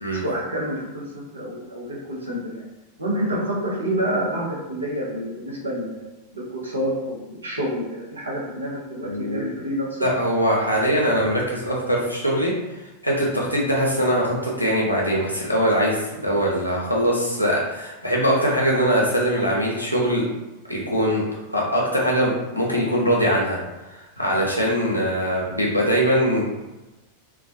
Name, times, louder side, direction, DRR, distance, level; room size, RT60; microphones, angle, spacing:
voice 1, 0.1-2.6 3.0-6.0 6.3-10.0, equal, 75° right, -4 dB, 0.7 m, -28 dB
voice 2, 9.0-9.4 10.0-12.5 13.0-20.2 20.7-21.2 21.5-23.6 23.9-26.4, equal, 90° left, -4 dB, 0.6 m, -22 dB
2.3 x 2.2 x 2.6 m, 1.1 s
figure-of-eight pair, 90°, 0 cm